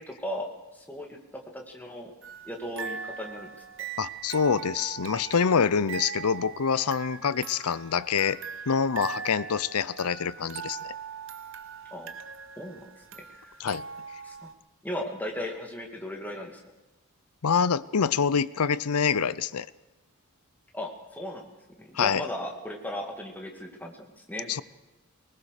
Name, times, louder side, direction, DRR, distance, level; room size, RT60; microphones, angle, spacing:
voice 1, 0.0-2.1 2.5-3.5 11.9-12.1 12.6-13.5 14.2-14.5 14.8-16.6 20.7-21.5 21.8-24.5, left 1 dB, 10° left, 1 dB, 2.3 m, -37 dB
sound 1, 2.2-14.5, right 6 dB, 60° right, 1.0 m, -41 dB
voice 2, 4.0-8.4 8.7-10.9 13.6-13.9 17.4-19.7 21.9-22.3 24.5-24.6, left 6 dB, 85° left, 18 dB, 0.6 m, -26 dB
20.0 x 20.0 x 6.6 m, 1.1 s
head